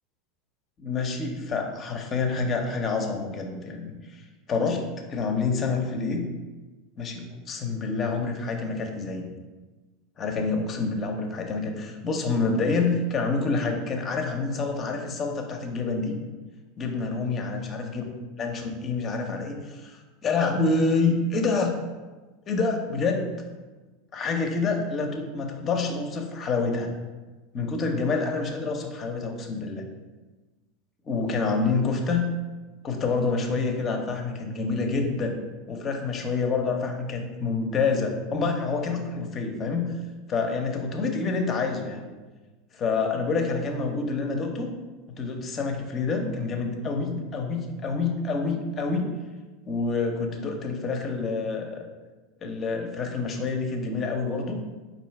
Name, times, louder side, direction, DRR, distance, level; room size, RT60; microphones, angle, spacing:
voice 1, 0.8-3.9 4.5-4.8 5.1-6.3 7.0-9.3 10.2-16.2 16.8-18.1 18.4-20.0 20.2-21.8 22.5-23.3 24.1-26.9 27.5-29.9 31.1-32.3 32.8-35.4 35.7-40.0 40.3-42.1 42.7-44.7 45.2-49.1 49.7-51.9 52.4-54.6, left 4 dB, 30° left, 3 dB, 0.6 m, -27 dB
4.6 x 2.6 x 3.2 m, 1.2 s
figure-of-eight pair, 80°, 0 cm